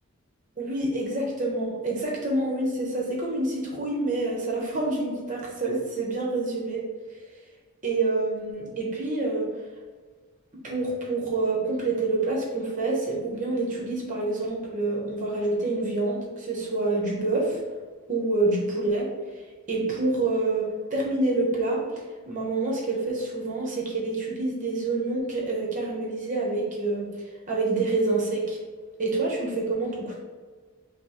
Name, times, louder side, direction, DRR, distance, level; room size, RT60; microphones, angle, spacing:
voice 1, 0.6-6.8 7.8-9.5 10.6-17.6 18.1-19.1 19.7-21.8 22.3-27.1 27.5-28.6 29.0-30.1, right 2 dB, 35° right, -3 dB, 0.9 m, -27 dB
5.1 x 2.1 x 3.0 m, 1.5 s
head